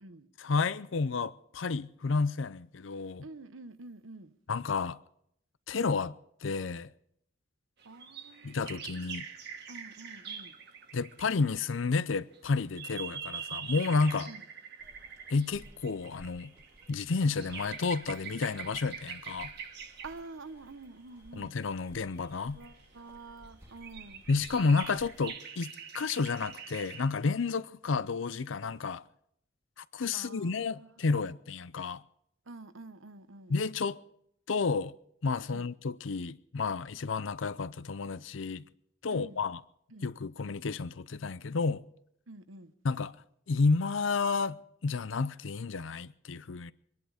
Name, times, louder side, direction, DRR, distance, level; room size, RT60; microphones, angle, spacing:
voice 1, 0.4-3.2 4.5-5.0 5.7-6.1 6.4-6.9 8.4-9.3 10.9-14.3 15.3-16.5 16.9-19.5 21.3-22.6 24.3-29.0 29.8-32.0 33.5-34.0 34.5-34.9 35.2-38.6 39.0-39.6 40.0-41.8 42.8-43.2 43.5-46.7, left 4 dB, 75° left, 0.6 m, -31 dB
voice 2, 3.2-4.3 7.8-8.9 9.7-10.6 14.2-14.4 20.0-21.5 22.5-24.2 30.1-30.9 32.5-33.5 35.5-35.7 39.1-39.4 39.9-40.1 42.3-42.7, right 3 dB, 90° right, 1.0 m, -48 dB
sound 1, 7.8-11.4 12.1-20.3 21.4-21.5 22.2-23.2 23.4-27.2, right 7 dB, 60° right, 1.8 m, -44 dB
sound 2, 14.8-25.2, equal, 10° right, 2.0 m, -58 dB
24.5 x 10.5 x 5.0 m
head